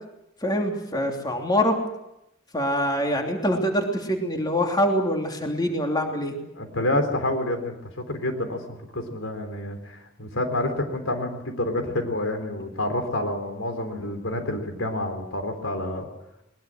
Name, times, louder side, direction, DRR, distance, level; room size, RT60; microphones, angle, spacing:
voice 1, 0.4-1.8 2.5-6.3, equal, 20° left, 2 dB, 3.0 m, -24 dB
voice 2, 6.5-16.1, left 1 dB, 85° left, 6 dB, 4.0 m, -28 dB
21.5 x 21.0 x 7.8 m, 0.87 s
head